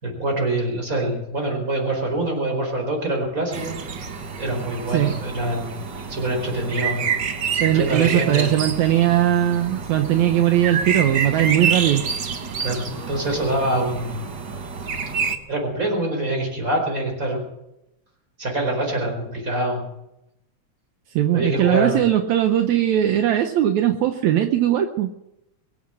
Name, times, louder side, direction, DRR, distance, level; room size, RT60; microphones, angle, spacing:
voice 1, 0.0-3.8 4.4-5.8 6.1-7.1 7.7-8.5 12.6-14.3 15.5-17.5 18.4-19.9 21.3-22.0, right 1 dB, 25° right, 1 dB, 4.9 m, -25 dB
sound 1, 3.5-15.4, right 6 dB, 50° right, 1.4 m, -28 dB
voice 2, 7.6-12.1 21.2-25.1, right 11 dB, 75° right, 7 dB, 2.1 m, -19 dB
23.0 x 8.0 x 7.6 m, 0.87 s
omnidirectional pair, 3.3 m